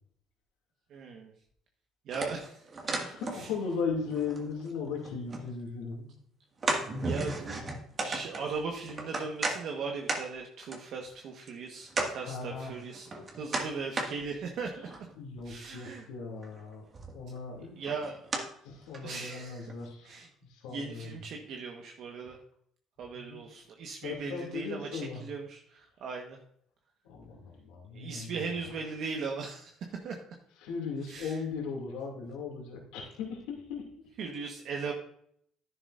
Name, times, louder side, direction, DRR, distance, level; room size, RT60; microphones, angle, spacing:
voice 1, 0.9-1.3 2.1-2.7 3.0-3.5 7.0-7.6 8.0-14.9 15.4-16.1 17.8-18.2 19.0-19.7 20.0-20.3 20.7-22.4 23.0-26.4 27.9-29.7 30.0-30.2 31.1-31.4 34.2-34.9, right 4 dB, 65° right, 1 dB, 1.4 m, -38 dB
sound 1, 2.1-3.7 4.0-5.5 5.9-6.0 6.6-9.6 10.1-10.2 10.7-10.8 11.5-11.6 11.9-12.1 12.7-14.1 14.6-15.1 16.4-16.6 16.9-17.4 17.9-18.4 18.9-19.0 19.7-19.8, right 3 dB, 35° right, 2.0 m, -34 dB
voice 2, 2.9-6.1 12.1-12.8 15.1-16.9 17.1-17.8 18.6-21.2 23.1-23.4 24.0-25.2 27.0-28.7 30.6-33.9, left 5 dB, 85° left, -1 dB, 2.6 m, -37 dB
11.0 x 10.0 x 2.6 m, 0.65 s
cardioid pair, 95°, 0 cm